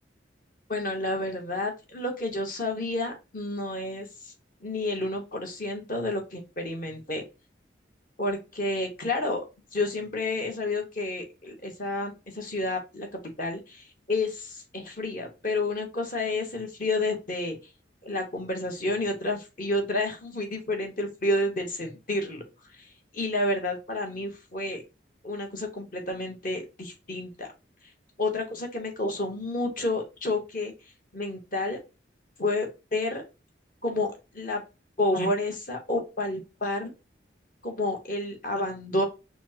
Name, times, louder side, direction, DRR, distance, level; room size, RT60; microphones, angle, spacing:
voice 1, 0.7-4.3 4.6-7.2 8.2-9.4 9.7-13.1 13.4-17.6 18.0-22.4 22.8-22.9 23.1-24.8 25.2-27.5 28.2-30.7 31.1-31.8 32.4-33.2 33.8-34.1 34.3-34.6 35.0-36.9 37.6-39.0, left 2 dB, 45° left, 3 dB, 1.0 m, -30 dB
6.0 x 2.1 x 2.7 m, 0.28 s
head